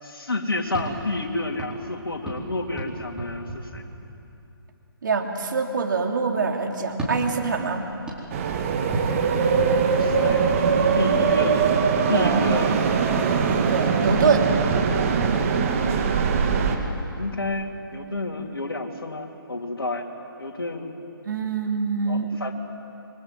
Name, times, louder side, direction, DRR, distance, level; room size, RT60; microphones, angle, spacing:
voice 1, 0.0-3.8 9.3-10.5 10.9-11.6 12.1-12.8 15.9-16.7 17.2-20.1 20.4-20.9 22.1-22.5, left 2 dB, 70° left, 1 dB, 3.6 m, -30 dB
sound 1, 0.6-4.5 6.9-11.7 14.1-16.5, right 2 dB, 5° right, 4.2 m, -35 dB
voice 2, 5.0-7.9 12.1-12.6 13.2-14.5 21.2-22.3, right 5 dB, 55° right, 2 dB, 3.2 m, -25 dB
sound 2, 8.3-16.7, right 6 dB, 35° right, 2.2 m, -22 dB
27.5 x 24.0 x 7.8 m, 2.9 s
figure-of-eight pair, 140°, 13 cm